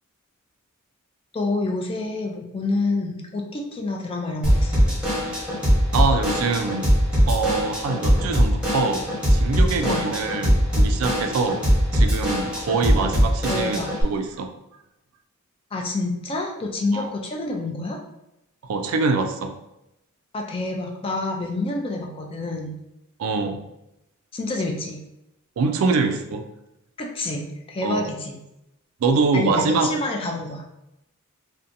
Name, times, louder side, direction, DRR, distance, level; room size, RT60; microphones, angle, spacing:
voice 1, 1.3-4.7 9.8-10.0 13.5-13.9 15.7-18.0 20.3-22.8 24.3-25.0 27.0-28.4 29.3-30.7, left 2 dB, 25° left, 1 dB, 0.3 m, -28 dB
Drum kit / Drum, 4.4-14.0, equal, 5° right, 0.9 m, -21 dB
voice 2, 5.9-6.9 7.3-11.6 11.9-14.5 16.9-17.1 18.7-19.5 23.2-23.6 25.6-26.4 27.8-28.0 29.0-29.9, right 4 dB, 70° right, 6 dB, 0.3 m, -24 dB
2.6 x 2.1 x 2.5 m, 0.88 s
head